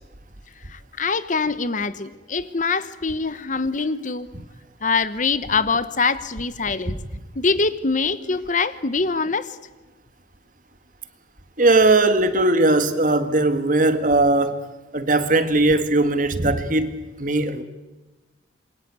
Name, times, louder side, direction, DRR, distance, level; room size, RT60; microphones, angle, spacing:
voice 1, 0.7-4.3 4.8-7.0 7.3-9.6, left 4 dB, 45° left, 1.0 m, -24 dB
voice 2, 11.6-14.6 14.9-16.9 17.2-17.6, right 2 dB, 45° right, 1.8 m, -19 dB
27.0 x 23.0 x 8.3 m
head